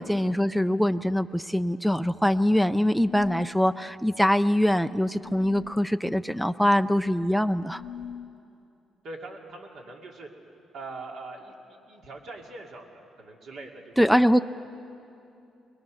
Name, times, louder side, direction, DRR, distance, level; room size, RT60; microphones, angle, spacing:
voice 1, 0.0-7.8 14.0-14.4, equal, ahead, 13 dB, 0.4 m, -23 dB
sound 1, 2.9-3.6 5.2-5.8 7.6-8.3, left 9 dB, 80° left, 0.7 m, -41 dB
voice 2, 9.0-10.3 10.7-14.1, right 2 dB, 70° right, 1 dB, 2.5 m, -42 dB
22.0 x 20.5 x 6.4 m, 2.8 s
cardioid pair, 90°, 0 cm